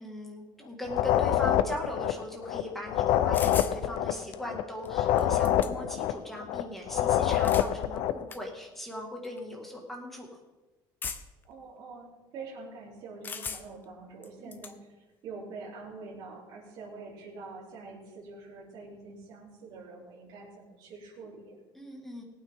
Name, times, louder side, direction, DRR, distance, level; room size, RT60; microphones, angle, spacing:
voice 1, 0.0-10.3 14.4-14.6 21.8-22.2, left 1 dB, 5° left, 0 dB, 1.9 m, -39 dB
sound 1, 0.9-8.2, left 11 dB, 65° left, 0.5 m, -26 dB
sound 2, 3.3-3.8 4.8-4.9 5.2-6.0 7.2-7.7 8.3-8.4 9.2-9.4 11.0-11.4 13.2-13.8 14.2-14.7, left 5 dB, 20° left, 0.6 m, -38 dB
voice 2, 11.4-21.6, right 3 dB, 50° right, -5 dB, 3.4 m, -45 dB
18.5 x 8.9 x 3.7 m, 1.2 s
cardioid pair, 175°, 9 cm